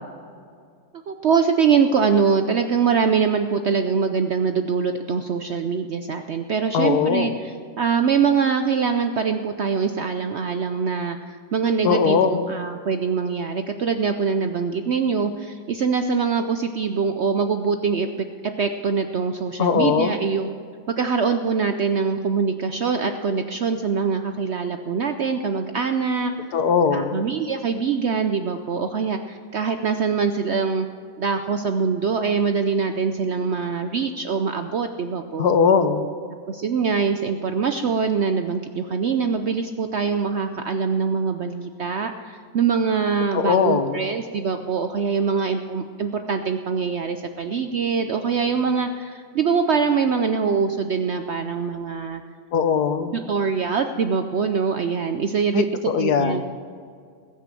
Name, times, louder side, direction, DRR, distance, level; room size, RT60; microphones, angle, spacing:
voice 1, 1.1-18.1 18.4-20.5 20.9-26.3 26.9-30.9 31.2-35.5 36.5-52.2 53.1-56.4, right 5 dB, 65° right, 7 dB, 0.7 m, -23 dB
voice 2, 6.7-7.4 11.8-12.5 19.6-20.2 26.5-27.2 35.4-36.1 43.3-44.1 52.5-53.1 55.5-56.4, left 6 dB, 75° left, 9 dB, 1.5 m, -20 dB
20.0 x 6.6 x 7.6 m, 2.1 s
omnidirectional pair, 1.7 m